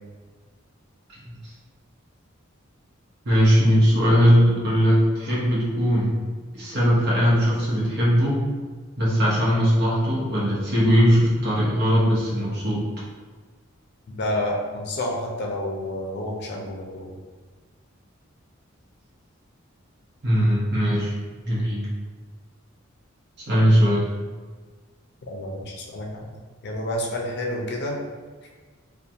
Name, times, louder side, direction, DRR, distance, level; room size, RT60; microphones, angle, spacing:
voice 1, 3.2-6.2 6.5-8.4 9.0-12.8 20.2-21.1 21.4-21.8 23.5-24.0, equal, 55° right, -7 dB, 0.9 m, -19 dB
voice 2, 14.1-17.1 25.2-26.2 26.6-28.0, left 1 dB, 55° left, -1 dB, 0.5 m, -29 dB
2.4 x 2.2 x 2.8 m, 1.4 s
head